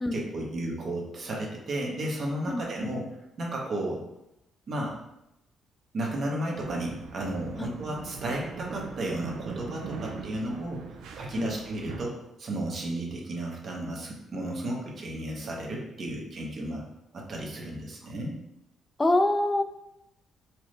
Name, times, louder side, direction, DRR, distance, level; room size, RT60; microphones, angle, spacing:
voice 1, 0.1-3.0 3.4-4.0 4.7-4.9 5.9-10.8 11.2-16.8 17.1-18.3, right 1 dB, 50° right, -2 dB, 0.9 m, -33 dB
voice 2, 2.5-3.0 7.6-7.7 11.4-11.6 19.0-19.6, left 2 dB, 20° left, 8 dB, 0.3 m, -26 dB
sound 1, 6.6-12.1, right 5 dB, 85° right, 0.4 m, -41 dB
4.4 x 2.1 x 3.1 m, 0.86 s
cardioid pair, 90°, 0 cm